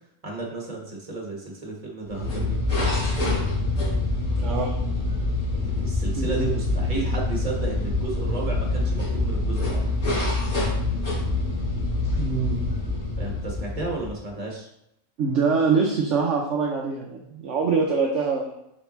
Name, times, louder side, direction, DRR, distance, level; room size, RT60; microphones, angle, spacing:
voice 1, 0.2-2.7 5.6-9.9 13.2-14.7, right 3 dB, 25° right, -2 dB, 1.7 m, -33 dB
sound 1, 2.1-14.2, left 2 dB, 60° left, 2.8 m, -25 dB
voice 2, 4.4-4.7 6.2-6.6 12.2-12.6 15.2-18.6, right 5 dB, 60° right, -1 dB, 1.0 m, -24 dB
6.7 x 5.0 x 3.1 m, 0.81 s
omnidirectional pair, 1.5 m